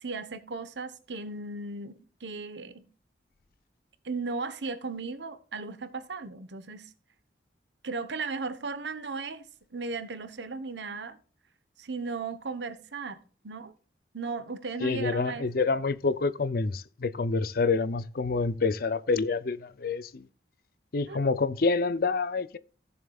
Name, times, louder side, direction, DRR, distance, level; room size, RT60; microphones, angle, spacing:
voice 1, 0.0-2.8 4.0-6.9 7.8-9.5 9.7-11.2 11.8-13.7 14.1-15.5 21.0-21.3, right 4 dB, 80° right, 1.0 m, -36 dB
voice 2, 14.8-20.3 20.9-22.6, left 4 dB, 55° left, 0.5 m, -27 dB
16.0 x 7.1 x 2.4 m
head